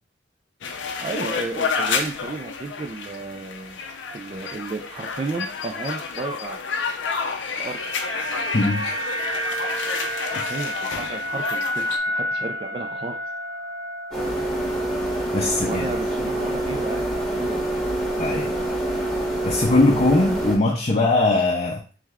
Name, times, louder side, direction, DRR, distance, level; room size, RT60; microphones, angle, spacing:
sound 1, 0.6-12.0, left 5 dB, 85° left, 0.5 m, -30 dB
voice 1, 1.0-3.8 4.1-6.6 7.6-7.8 10.2-13.2 15.6-17.6, right 3 dB, 30° right, 3 dB, 0.4 m, -33 dB
sound 2, 6.9-15.2 15.5-15.7, equal, 70° right, 0.8 m, -30 dB
voice 2, 8.5-9.0 10.3-10.5 15.3-15.9 18.2-18.5 19.4-21.8, left 2 dB, 35° left, -1 dB, 0.6 m, -20 dB
sound 3, 14.1-20.6, right 1 dB, 5° left, 0.9 m, -26 dB
3.4 x 3.1 x 3.5 m, 0.37 s
head